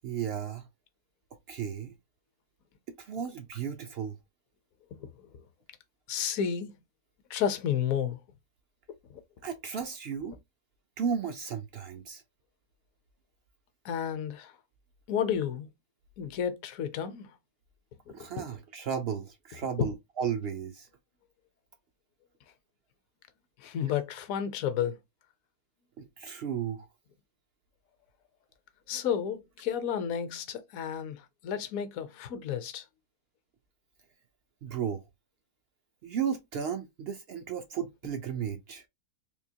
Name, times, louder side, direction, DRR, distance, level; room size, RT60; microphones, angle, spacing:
voice 1, 0.0-0.7 1.5-1.9 3.0-4.2 9.4-10.4 11.0-12.2 18.1-20.9 26.0-26.9 34.6-35.1 36.0-38.8, right 7 dB, 75° right, 0.5 m, -34 dB
voice 2, 6.1-6.8 7.3-8.2 9.1-9.2 13.8-14.5 15.1-15.7 16.2-17.3 18.2-18.3 23.6-25.0 28.9-32.8, left 8 dB, 70° left, 1.0 m, -32 dB
3.6 x 2.7 x 2.7 m
omnidirectional pair, 1.6 m